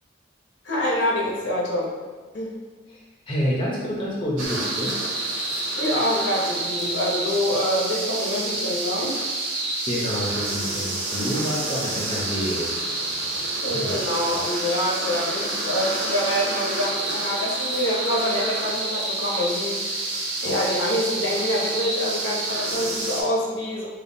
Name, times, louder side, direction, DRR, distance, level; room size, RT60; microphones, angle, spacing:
voice 1, 0.6-1.9 2.3-2.6 5.7-9.2 13.6-20.1 20.4-23.9, left 1 dB, 65° left, -2 dB, 0.7 m, -26 dB
voice 2, 2.9-5.0 9.6-14.4, equal, 25° left, -5 dB, 0.6 m, -29 dB
sound 1, 4.4-23.2, right 2 dB, 85° right, 0.8 m, -28 dB
5.2 x 2.3 x 2.6 m, 1.4 s
head